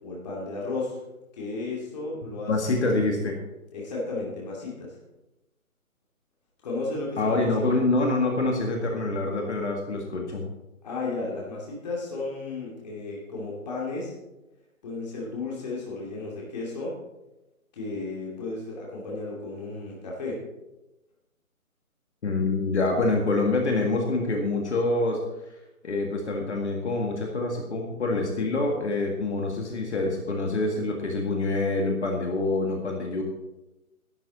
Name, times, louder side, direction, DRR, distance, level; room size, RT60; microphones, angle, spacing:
voice 1, 0.0-1.0 1.3-2.9 3.7-5.0 6.6-7.8 10.8-14.1 14.8-17.0 17.7-20.4, left 3 dB, 30° left, -5 dB, 2.7 m, -33 dB
voice 2, 2.5-3.4 7.2-10.5 22.2-25.2 25.8-33.2, left 2 dB, 50° left, 1 dB, 2.0 m, -26 dB
12.0 x 11.0 x 4.2 m, 0.99 s
hypercardioid pair, 165°, 43 cm